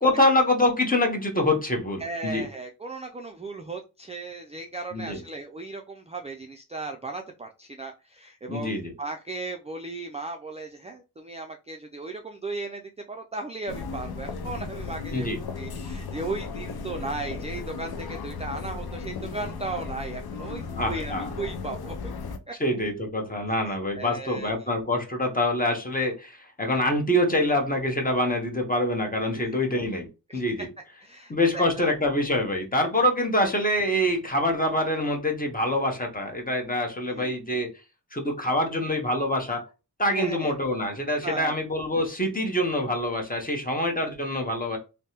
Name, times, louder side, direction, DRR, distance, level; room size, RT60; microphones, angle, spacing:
voice 1, 0.0-2.4 4.9-5.2 8.5-8.9 15.1-15.4 20.8-21.3 22.6-30.1 30.3-30.7 31.3-37.7 38.1-39.6 40.0-44.8, left 1 dB, 20° left, 3 dB, 1.0 m, -25 dB
voice 2, 2.0-12.8 13.1-15.3 15.5-22.1 22.5-22.6 23.7-24.5 29.3-29.6 30.3-30.4 31.0-31.9 37.1-37.3 40.1-40.5 41.2-41.5, right 3 dB, 20° right, 3 dB, 0.3 m, -36 dB
sound 1, 13.7-22.4, left 4 dB, 70° left, 0.5 m, -35 dB
3.3 x 2.1 x 2.8 m, 0.29 s
cardioid pair, 55°, 39 cm